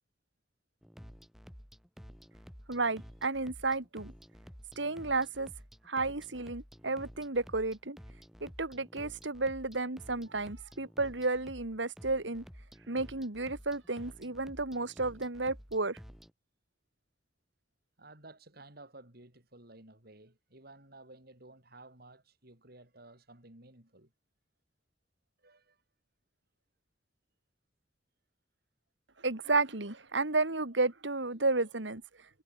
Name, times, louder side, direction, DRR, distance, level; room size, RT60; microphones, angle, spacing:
sound 1, 0.8-16.3, equal, ahead, 7.3 m, -52 dB
voice 1, 2.7-4.1 4.8-5.5 5.9-8.0 8.4-12.4 12.9-16.0 29.2-32.0, right 3 dB, 85° right, 2.5 m, -32 dB
voice 2, 18.0-24.1 25.4-25.8, right 2 dB, 60° right, 7.3 m, -54 dB
head